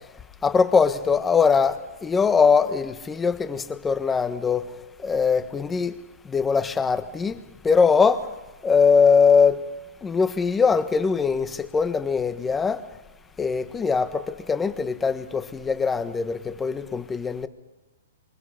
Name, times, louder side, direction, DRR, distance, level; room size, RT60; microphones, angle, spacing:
voice 1, 0.4-4.6 5.0-5.9 6.3-7.4 7.6-8.3 8.6-9.6 10.0-12.8 13.4-17.5, left 5 dB, 15° left, 1.4 m, -21 dB
26.0 x 26.0 x 5.1 m
hypercardioid pair, 135°, 0 cm